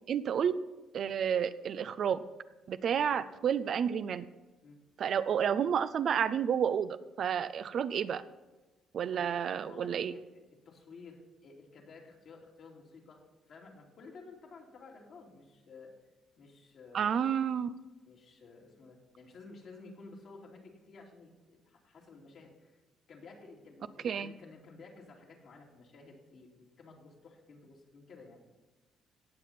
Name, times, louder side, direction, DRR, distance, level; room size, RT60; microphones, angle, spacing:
voice 1, 0.1-0.5 0.9-2.2 2.7-4.2 5.0-8.2 8.9-10.1 16.9-17.7 24.0-24.3, right 8 dB, 60° right, 13 dB, 0.6 m, -30 dB
voice 2, 9.6-15.9 16.4-17.2 18.1-22.8 23.1-28.4, left 3 dB, 65° left, -1 dB, 2.9 m, -53 dB
17.5 x 7.4 x 4.3 m, 1.1 s
supercardioid pair, 65°, 0 cm